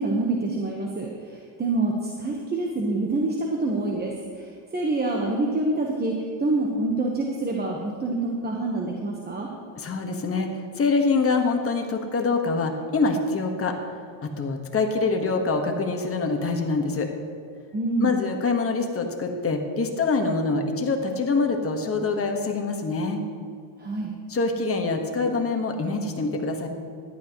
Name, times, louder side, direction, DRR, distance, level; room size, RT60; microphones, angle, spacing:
voice 1, 0.0-6.1 6.4-9.5 17.7-18.1 23.8-24.1, right 2 dB, 20° right, -1 dB, 1.2 m, -26 dB
voice 2, 9.8-10.5 10.8-13.7 14.2-17.1 18.0-23.2 24.3-26.7, left 3 dB, 30° left, 4 dB, 1.5 m, -25 dB
15.0 x 11.5 x 3.1 m, 2.3 s
cardioid pair, 125°, 48 cm